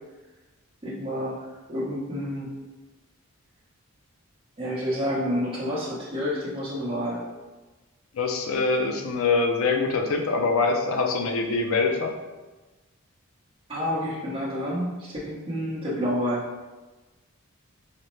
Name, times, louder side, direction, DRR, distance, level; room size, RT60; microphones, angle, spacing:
voice 1, 0.8-2.5 4.6-7.2 13.7-16.4, equal, 25° right, -10 dB, 0.8 m, -29 dB
voice 2, 8.1-12.1, left 4 dB, 65° left, 3 dB, 0.4 m, -24 dB
4.1 x 2.1 x 3.1 m, 1.2 s
head